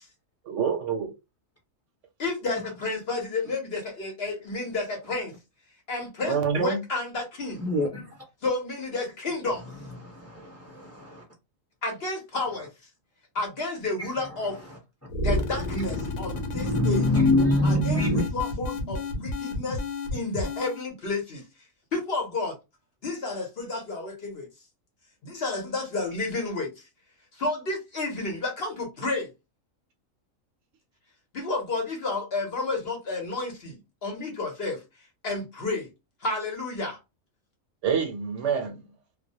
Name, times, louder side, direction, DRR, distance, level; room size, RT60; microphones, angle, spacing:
voice 1, 0.4-1.1 6.3-6.8 37.8-38.7, right 6 dB, 70° right, 0.8 m, -26 dB
voice 2, 2.2-5.3 5.9-7.7 8.4-9.7 11.8-12.7 13.3-14.6 15.2-17.1 17.6-19.8 20.1-21.4 21.9-22.5 23.0-24.5 25.2-26.9 27.3-29.3 31.3-35.9 36.2-37.0, left 3 dB, 55° left, 0.8 m, -31 dB
voice 3, 7.6-8.2 10.0-11.2 15.9-16.1 16.5-18.2, left 2 dB, 15° left, 0.7 m, -24 dB
sound 1, 15.1-20.9, left 2 dB, 80° left, 1.0 m, -31 dB
2.3 x 2.1 x 2.6 m
omnidirectional pair, 1.4 m